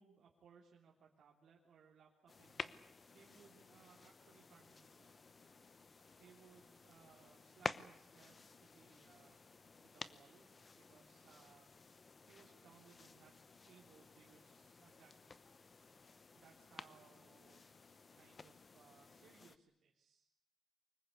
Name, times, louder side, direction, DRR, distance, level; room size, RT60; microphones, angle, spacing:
voice 1, 0.0-5.2 6.2-9.4 9.8-10.5 10.7-11.7 12.2-15.4 16.3-17.6 18.1-20.3, right 6 dB, 65° right, -1 dB, 3.4 m, -66 dB
sound 1, 2.3-19.6, left 4 dB, 30° left, 0.9 m, -53 dB
25.0 x 21.5 x 8.4 m, 0.79 s
wide cardioid pair, 165°, 0 cm